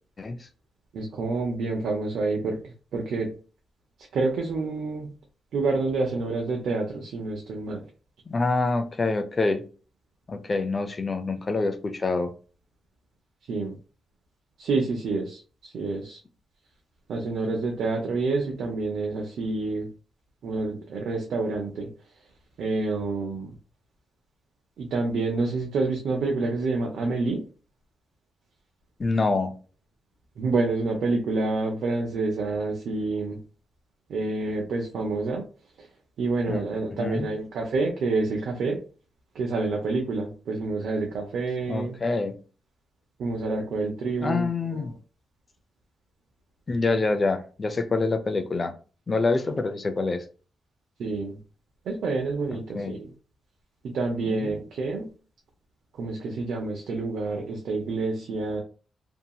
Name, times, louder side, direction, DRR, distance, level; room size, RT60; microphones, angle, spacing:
voice 1, 0.9-2.6 2.9-3.3 4.1-5.1 5.5-7.8 13.5-13.7 14.6-16.2 17.1-19.9 20.4-21.9 22.6-23.5 24.8-27.4 30.4-33.4 34.1-35.4 35.8-35.9 36.2-38.8 39.3-42.0 43.2-44.9 51.0-51.4 51.9-53.1 53.9-55.1 56.0-58.6, right 3 dB, 80° right, 1 dB, 0.6 m, -28 dB
voice 2, 8.3-9.6 10.3-12.3 29.0-29.5 36.5-36.6 36.9-37.3 41.7-42.3 44.2-44.9 46.7-48.7 49.1-50.2 52.5-53.0 54.2-54.6, left 3 dB, 35° left, 8 dB, 0.5 m, -26 dB
2.8 x 2.7 x 2.3 m, 0.37 s
cardioid pair, 90°, 0 cm